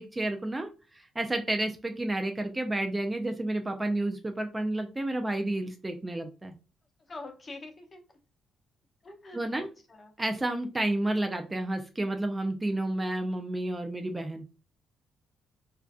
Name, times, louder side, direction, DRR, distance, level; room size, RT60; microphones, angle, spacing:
voice 1, 0.0-6.5 9.3-9.7 10.2-14.4, right 1 dB, 20° right, 5 dB, 0.3 m, -31 dB
voice 2, 7.0-8.0 9.0-9.6 9.9-10.1, left 2 dB, 35° left, 3 dB, 0.7 m, -44 dB
2.5 x 2.2 x 2.3 m, 0.33 s
cardioid pair, 90°, 0 cm